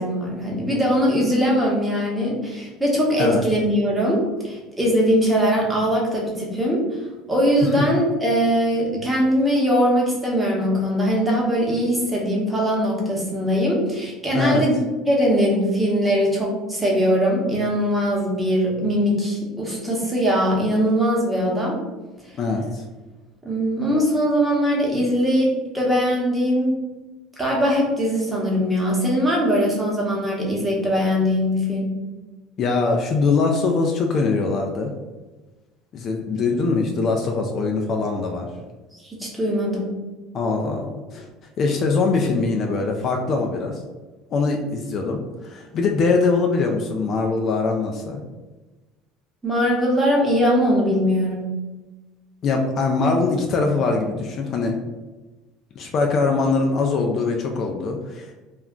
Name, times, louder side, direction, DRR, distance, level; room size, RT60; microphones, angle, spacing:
voice 1, 0.0-6.8 7.3-21.8 23.4-25.5 25.7-26.7 27.4-31.9 39.0-39.9 49.4-51.5, equal, 10° right, -3 dB, 0.9 m, -21 dB
voice 2, 14.3-14.6 22.4-22.8 32.6-34.9 35.9-38.5 40.3-41.3 41.6-43.8 44.3-48.2 52.4-54.8 55.8-58.3, left 4 dB, 45° left, 2 dB, 0.3 m, -22 dB
2.3 x 2.1 x 3.6 m, 1.2 s
supercardioid pair, 110°, 0 cm